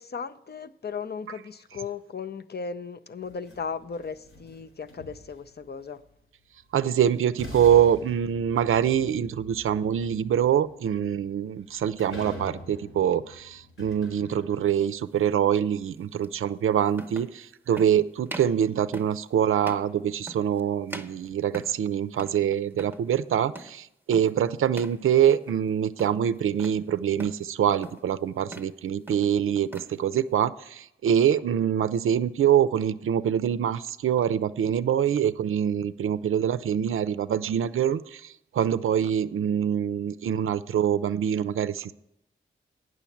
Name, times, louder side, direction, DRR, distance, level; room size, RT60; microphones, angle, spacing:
voice 1, 0.0-6.0, left 5 dB, 50° left, 0.6 m, -36 dB
sound 1, 3.2-5.6 6.8-6.9 7.4-14.9, left 1 dB, 75° left, 4.2 m, -45 dB
voice 2, 6.7-41.9, right 9 dB, 75° right, 0.4 m, -25 dB
sound 2, 14.7-14.9 16.2-16.3 16.9-17.4 17.7-18.0 18.3-18.6 18.9-19.2 19.6-19.9 20.3-20.6 20.9-21.9 22.2-22.5 22.7-23.0 23.5-23.8 24.1-24.4 24.7-25.0 25.3-25.7 26.0-26.8 27.2-27.5 27.8-28.1 28.4-28.8 29.1-29.9, right 2 dB, 10° right, 0.9 m, -42 dB
9.0 x 6.3 x 8.4 m
cardioid pair, 50°, 21 cm